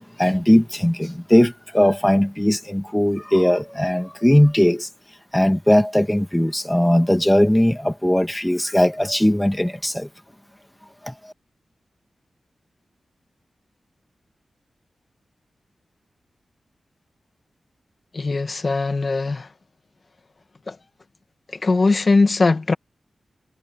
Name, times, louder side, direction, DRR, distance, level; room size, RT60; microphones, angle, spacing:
voice 1, 0.2-4.9 5.3-10.1 11.0-11.1, left 1 dB, 5° left, 1.7 m, -18 dB
voice 2, 18.1-19.5 20.7-20.8 21.5-22.7, left 3 dB, 45° left, 1.5 m, -20 dB
wide cardioid pair, 95°, 0 cm